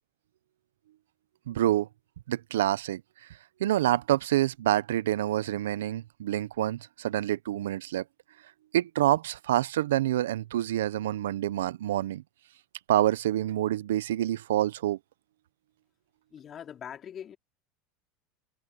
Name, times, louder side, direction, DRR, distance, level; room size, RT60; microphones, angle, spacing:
voice 1, 1.5-1.9 2.3-3.0 3.6-8.0 8.7-12.2 12.9-15.0, right 13 dB, 85° right, 0.7 m, -27 dB
voice 2, 16.3-17.4, left 9 dB, 35° left, 3.5 m, -42 dB
hypercardioid pair, 95°, 0 cm